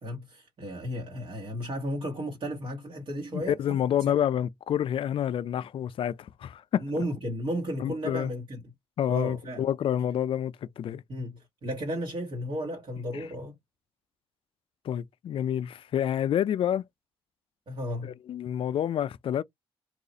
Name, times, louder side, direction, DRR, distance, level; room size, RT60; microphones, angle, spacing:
voice 1, 0.0-3.8 4.1-4.2 6.8-8.6 9.1-9.7 11.1-13.6 17.7-18.1, equal, 55° right, 1.2 m, -34 dB
voice 2, 3.3-6.8 7.8-8.3 9.0-11.0 13.1-13.2 14.8-16.8 18.0-19.4, left 10 dB, 60° left, 0.4 m, -28 dB
3.0 x 2.4 x 3.9 m
cardioid pair, 80°, 10 cm